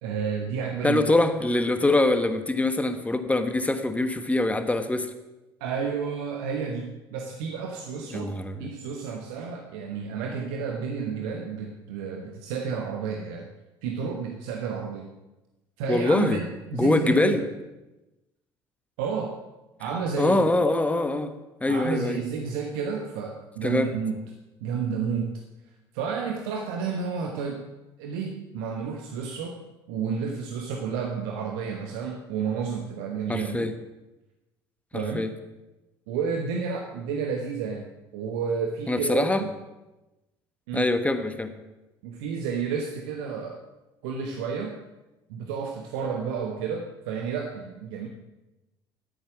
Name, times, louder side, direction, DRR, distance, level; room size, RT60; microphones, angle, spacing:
voice 1, 0.0-1.0 5.6-8.3 8.6-13.5 13.8-15.1 15.8-17.4 19.0-19.4 19.8-20.4 21.7-24.3 24.6-25.4 25.9-27.7 28.0-29.6 29.9-33.7 34.9-35.3 36.1-39.5 40.7-40.9 42.0-43.6 44.0-44.8 45.3-48.1, right 6 dB, 60° right, 3 dB, 1.1 m, -31 dB
voice 2, 0.8-5.1 8.1-8.7 15.9-16.4 16.7-17.4 20.2-21.3 21.6-22.2 23.6-23.9 33.3-33.7 34.9-35.3 38.9-39.4 40.7-41.5, left 2 dB, 10° left, 9 dB, 1.2 m, -24 dB
10.5 x 8.8 x 6.1 m, 1.0 s
figure-of-eight pair, 55°, 13 cm